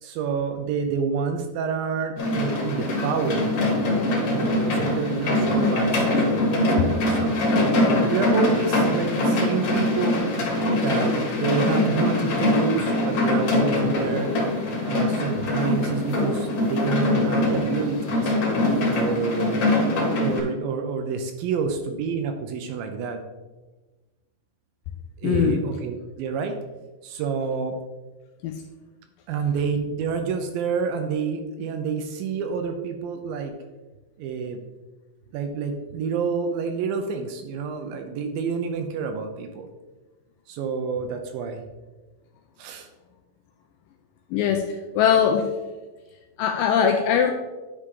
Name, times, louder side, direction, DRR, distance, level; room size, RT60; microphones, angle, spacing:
voice 1, 0.0-3.5 4.3-7.4 8.1-10.3 10.7-14.3 14.8-18.3 18.9-19.6 20.2-23.2 25.2-26.6 27.0-27.8 29.3-33.5 34.2-34.6 35.3-39.7 40.5-41.6 42.6-42.9, right 6 dB, 80° right, 6 dB, 2.2 m, -28 dB
sound 1, 2.2-20.4, left 1 dB, 55° left, 2.9 m, -23 dB
voice 2, 25.2-25.6 28.4-28.5 44.3-45.5 46.4-47.3, left 8 dB, 85° left, 5 dB, 2.0 m, -21 dB
9.8 x 4.9 x 3.7 m, 1.2 s
omnidirectional pair, 4.6 m